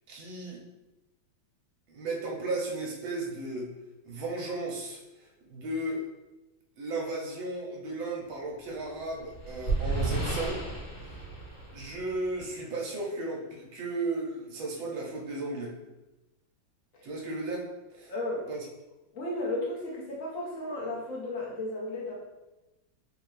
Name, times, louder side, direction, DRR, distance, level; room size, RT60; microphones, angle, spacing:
voice 1, 0.1-0.6 1.9-3.7 4.0-5.0 5.5-6.1 6.8-10.6 11.7-15.8 17.0-17.7 18.0-18.1 18.5-18.6, right 2 dB, 75° right, -1 dB, 1.6 m, -35 dB
sound 1, 8.8-12.5, right 3 dB, 35° left, 1.4 m, -33 dB
voice 2, 18.1-18.5 19.1-22.1, left 1 dB, 55° left, -4 dB, 0.9 m, -34 dB
3.8 x 2.8 x 3.2 m, 1.0 s
omnidirectional pair, 2.3 m